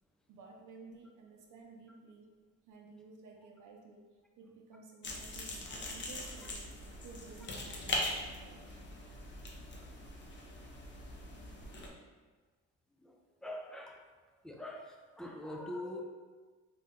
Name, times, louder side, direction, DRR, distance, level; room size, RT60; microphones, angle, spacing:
voice 1, 0.3-2.3 2.7-6.7 7.0-8.7, right 4 dB, 80° right, 1 dB, 0.6 m, -54 dB
sound 1, 5.0-11.9, left 2 dB, 40° left, 0.6 m, -41 dB
voice 2, 12.9-14.1 14.4-16.0, left 1 dB, ahead, 0 dB, 0.4 m, -44 dB
2.7 x 2.1 x 3.6 m, 1.4 s
cardioid pair, 90°, 30 cm